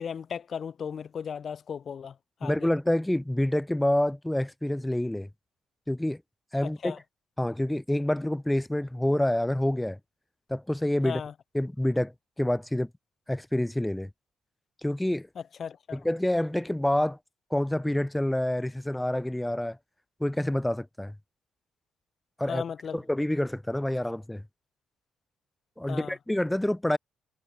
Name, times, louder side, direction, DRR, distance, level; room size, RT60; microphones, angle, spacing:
voice 1, 0.0-2.2 2.4-2.7 6.8-7.0 11.0-11.3 15.6-16.0 22.5-23.0 25.9-26.1, left 7 dB, 50° left, 5.6 m, -36 dB
voice 2, 2.4-5.3 5.9-6.2 6.5-7.0 7.4-10.0 10.5-11.2 11.5-12.1 12.4-12.9 13.3-14.1 14.8-15.3 15.9-17.2 17.5-19.8 20.2-21.1 22.4-22.6 22.9-24.4 25.8-27.0, left 1 dB, 10° left, 2.0 m, -27 dB
figure-of-eight pair, 45°, 0 cm